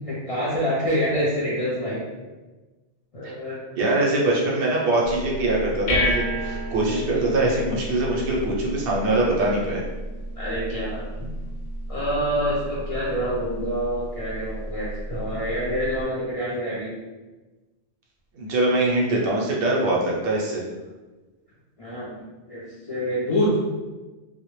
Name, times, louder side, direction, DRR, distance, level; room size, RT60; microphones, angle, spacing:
voice 1, 0.0-2.0 3.1-3.6 7.1-7.5 10.4-11.3 11.9-16.9 21.8-22.2 22.5-23.6, equal, 55° left, -8 dB, 0.4 m, -26 dB
voice 2, 3.8-9.8 18.3-20.6, right 2 dB, 65° right, -3 dB, 0.7 m, -23 dB
sound 1, 5.0-16.0, equal, 90° left, 0.9 m, -32 dB
2.0 x 2.0 x 3.0 m, 1.2 s
omnidirectional pair, 1.2 m